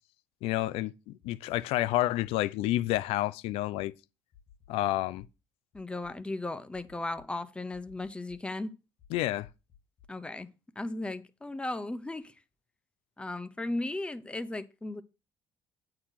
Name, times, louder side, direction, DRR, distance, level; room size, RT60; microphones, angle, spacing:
voice 1, 0.4-3.9 4.7-5.3 9.1-9.5, left 16 dB, 85° left, 0.5 m, -29 dB
sound 1, 1.2-1.6 2.2-2.4 2.9-3.0 3.5-3.8 4.3-4.7 5.2-5.3 5.7-6.1 6.7-7.2 7.7-8.4 9.0-10.1, left 9 dB, 65° left, 1.8 m, -57 dB
voice 2, 5.7-8.7 10.1-10.5 10.8-12.3 13.2-15.0, left 2 dB, 10° left, 0.7 m, -36 dB
8.6 x 4.0 x 6.3 m
cardioid pair, 115°, 10 cm